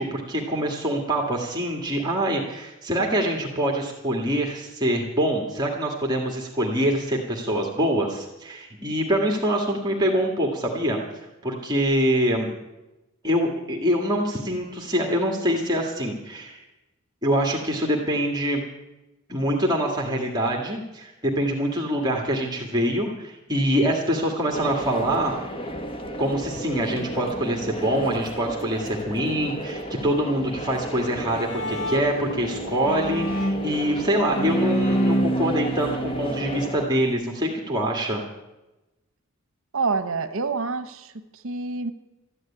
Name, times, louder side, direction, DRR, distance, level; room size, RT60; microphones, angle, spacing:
voice 1, 0.0-11.0 11.4-12.5 13.2-16.6 17.2-18.6 19.3-25.3 26.2-38.2, equal, 20° right, 0 dB, 1.8 m, -25 dB
sound 1, 24.5-36.9, equal, 25° left, 1.3 m, -33 dB
Bowed string instrument, 31.0-37.1, right 1 dB, 65° left, 1.1 m, -28 dB
voice 2, 39.7-41.9, right 4 dB, 65° right, 11 dB, 0.9 m, -27 dB
13.5 x 9.6 x 9.8 m, 1.0 s
head